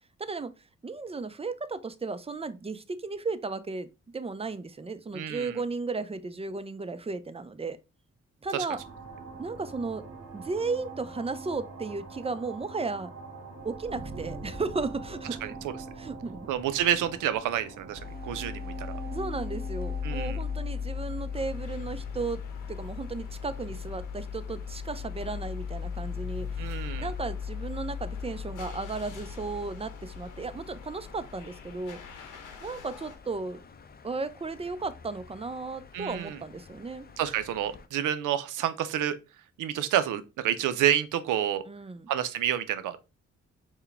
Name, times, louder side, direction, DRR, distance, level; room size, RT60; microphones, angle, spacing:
voice 1, 0.2-0.5 0.8-3.9 4.1-7.8 8.4-8.8 9.4-10.0 10.3-13.1 13.6-15.4 16.0-16.5 19.1-22.4 22.7-32.0 32.6-33.6 34.0-37.1 41.7-42.1, right 3 dB, 20° right, 0.4 m, -35 dB
voice 2, 5.1-5.6 8.5-8.7 15.4-15.5 16.5-19.0 20.0-20.4 26.6-27.1 35.9-36.4 37.2-39.2 39.6-41.6 42.1-43.0, right 11 dB, 85° right, 0.5 m, -29 dB
sound 1, 8.7-22.8, right 3 dB, 55° right, 1.4 m, -44 dB
sound 2, 18.0-37.9, left 7 dB, 30° left, 0.5 m, -38 dB
sound 3, 21.3-33.2, left 3 dB, 80° left, 0.8 m, -49 dB
4.5 x 2.2 x 3.2 m
supercardioid pair, 50°, 31 cm